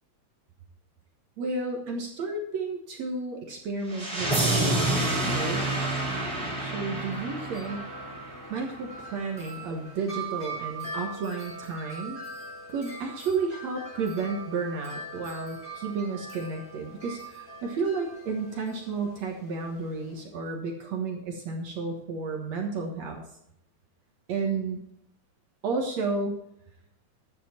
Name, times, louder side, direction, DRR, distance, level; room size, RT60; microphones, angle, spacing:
voice 1, 1.4-6.0 6.6-7.9 8.5-12.2 12.7-23.2 24.3-24.8 25.6-26.4, right 4 dB, 60° right, 2 dB, 1.9 m, -32 dB
sound 1, 3.9-8.9, right 2 dB, 10° right, 2.9 m, -28 dB
Wind chime, 6.9-20.2, right 3 dB, 20° left, 1.7 m, -42 dB
12.5 x 9.2 x 4.3 m, 0.75 s
omnidirectional pair, 4.8 m